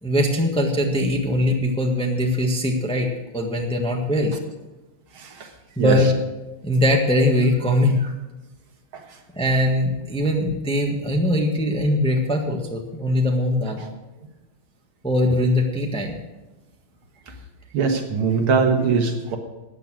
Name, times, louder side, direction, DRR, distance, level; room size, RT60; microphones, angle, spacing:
voice 1, 0.0-3.1 3.3-4.3 5.8-6.1 6.6-8.1 9.3-13.8 15.0-16.2, left 1 dB, 5° left, 1 dB, 1.1 m, -21 dB
voice 2, 5.2-5.5 5.8-6.0 8.9-9.0 13.8-13.9 17.7-19.4, right 5 dB, 80° right, 4 dB, 2.3 m, -21 dB
13.5 x 9.0 x 6.3 m, 1.1 s
omnidirectional pair, 2.3 m